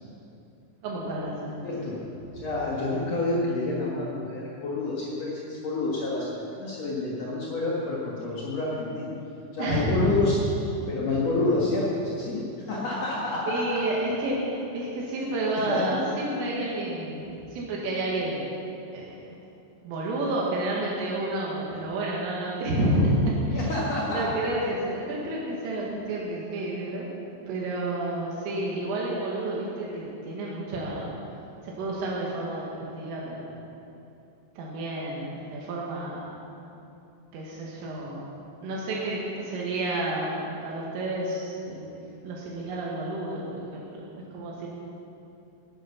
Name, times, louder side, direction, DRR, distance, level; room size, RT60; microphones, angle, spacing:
voice 1, 0.8-1.7 2.4-2.5 9.6-10.1 13.5-18.5 18.9-19.1 19.8-23.1 23.5-23.7 24.0-27.1 27.5-31.1 31.6-33.5 34.6-36.4 37.3-38.3 38.6-41.9 42.2-44.1 44.3-44.8, right 1 dB, 80° right, -4 dB, 4.4 m, -30 dB
voice 2, 1.6-2.0 2.3-9.1 9.5-10.4 10.9-13.8 15.2-15.3 15.7-15.8 23.5-24.2, left 2 dB, 75° left, -5 dB, 1.5 m, -28 dB
16.5 x 10.5 x 5.9 m, 2.8 s
omnidirectional pair, 5.8 m